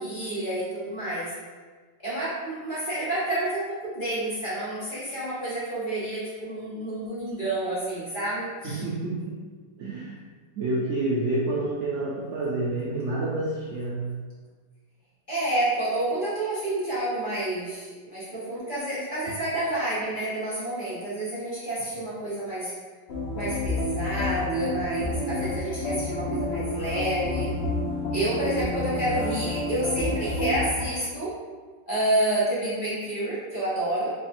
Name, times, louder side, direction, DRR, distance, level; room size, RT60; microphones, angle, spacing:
voice 1, 0.0-1.3 2.0-8.8 15.3-22.7 23.3-27.5 28.1-31.3 31.9-34.1, right 1 dB, 30° left, -10 dB, 1.2 m, -29 dB
voice 2, 8.6-9.4 9.8-10.2 10.6-14.1, right 2 dB, 65° right, -5 dB, 0.7 m, -28 dB
sound 1, 23.1-30.9, left 1 dB, 60° left, 0.6 m, -29 dB
3.6 x 2.4 x 4.3 m, 1.5 s
omnidirectional pair, 1.9 m